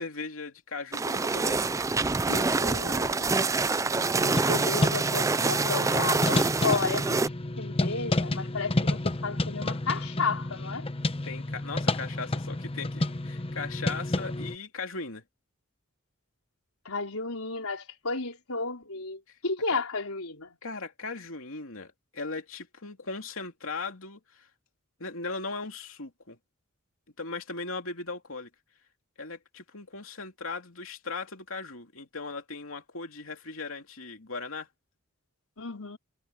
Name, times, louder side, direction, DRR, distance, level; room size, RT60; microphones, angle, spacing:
voice 1, 0.0-1.6 11.2-15.2 19.3-19.4 19.7-19.8 20.6-24.5 25.0-26.4 27.2-28.5 29.2-34.7, left 3 dB, 65° left, 3.1 m, -38 dB
sound 1, 0.9-7.3, right 3 dB, 15° right, 0.4 m, -26 dB
voice 2, 2.3-3.3 4.2-7.2 7.6-10.9 16.8-20.6 35.6-36.0, left 4 dB, 90° left, 4.2 m, -33 dB
sound 2, 4.2-14.6, left 2 dB, 25° left, 0.9 m, -30 dB
head